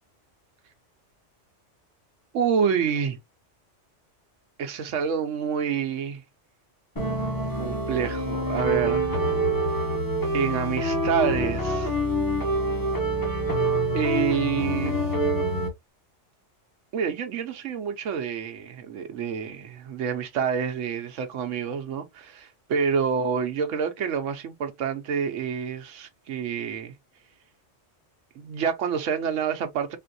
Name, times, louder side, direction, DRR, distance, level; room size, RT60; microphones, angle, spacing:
voice 1, 2.3-3.2 4.6-6.2 7.5-9.2 10.3-11.9 13.9-15.0 16.9-27.0 28.3-30.0, right 7 dB, 90° right, 1.1 m, -28 dB
sound 1, 7.0-15.7, right 1 dB, 20° left, 0.8 m, -26 dB
3.7 x 2.5 x 2.6 m
omnidirectional pair, 1.2 m